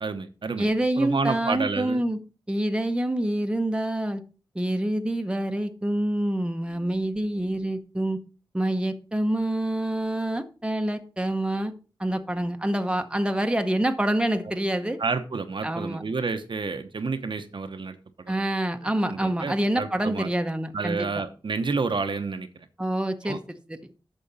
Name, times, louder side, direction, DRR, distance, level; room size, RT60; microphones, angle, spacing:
voice 1, 0.0-0.7 1.0-2.0 15.0-18.5 19.0-20.3 20.7-22.7 23.2-23.4, right 4 dB, 65° right, 8 dB, 0.8 m, -30 dB
voice 2, 0.6-2.2 2.5-4.2 4.5-8.2 8.5-11.7 12.0-15.0 15.6-16.0 18.3-21.1 22.8-23.9, right 1 dB, 10° right, 7 dB, 0.9 m, -26 dB
8.8 x 6.5 x 4.0 m, 0.34 s
wide cardioid pair, 85°, 9 cm